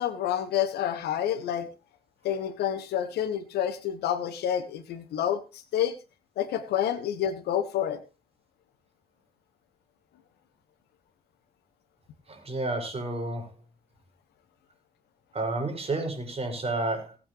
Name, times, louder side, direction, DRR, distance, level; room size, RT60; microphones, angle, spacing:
voice 1, 0.0-1.7 2.2-5.9 6.4-8.0, left 10 dB, 60° left, 12 dB, 1.3 m, -28 dB
voice 2, 12.3-13.5 15.3-17.2, right 2 dB, 35° right, 4 dB, 5.6 m, -30 dB
19.0 x 8.9 x 3.1 m, 0.28 s
figure-of-eight pair, 45°, 19 cm